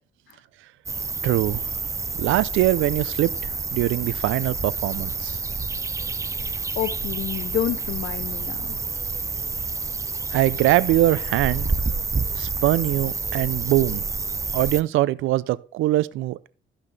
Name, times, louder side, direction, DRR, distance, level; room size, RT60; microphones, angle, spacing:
sound 1, 0.9-14.8, right 4 dB, 15° right, 0.4 m, -29 dB
voice 1, 1.2-1.7 2.1-3.3 3.7-5.4 10.3-11.7 12.4-14.0 14.5-16.5, right 16 dB, 85° right, 0.5 m, -22 dB
voice 2, 6.5-8.8, left 11 dB, 60° left, 0.5 m, -29 dB
13.0 x 5.7 x 3.3 m
cardioid pair, 90°, 20 cm